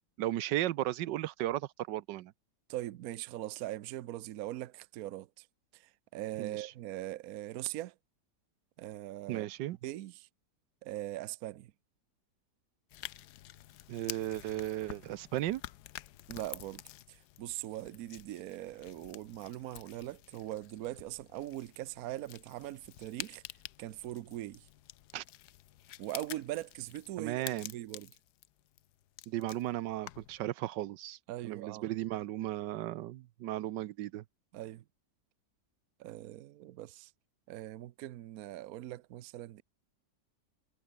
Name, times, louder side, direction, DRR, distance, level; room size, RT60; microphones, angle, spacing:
voice 1, 0.2-2.3 6.4-6.7 9.3-9.8 13.9-15.6 25.1-25.2 27.2-27.7 29.3-31.2 31.4-34.2, right 14 dB, 85° right, 1.3 m, -35 dB
voice 2, 2.7-5.5 5.7-7.9 8.8-9.5 9.8-10.3 10.8-11.7 16.3-16.8 17.1-23.4 23.8-24.7 26.0-28.1 31.3-31.9 34.5-34.8 36.0-37.1 37.5-39.6, right 15 dB, 65° right, 1.0 m, -41 dB
sound 1, 12.9-30.4, left 14 dB, 70° left, 1.2 m, -49 dB
omnidirectional pair, 1.9 m